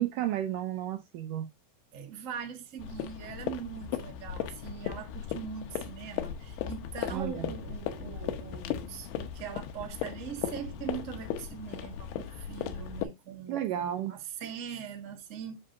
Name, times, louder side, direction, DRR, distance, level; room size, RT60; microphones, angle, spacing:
voice 1, 0.0-1.5 7.1-7.5 13.5-14.1, right 12 dB, 75° right, 2.0 m, -32 dB
voice 2, 1.9-15.6, right 7 dB, 40° right, 1.1 m, -41 dB
sound 1, 2.8-13.1, left 10 dB, 85° left, 2.8 m, -37 dB
7.8 x 7.2 x 2.6 m
omnidirectional pair, 4.5 m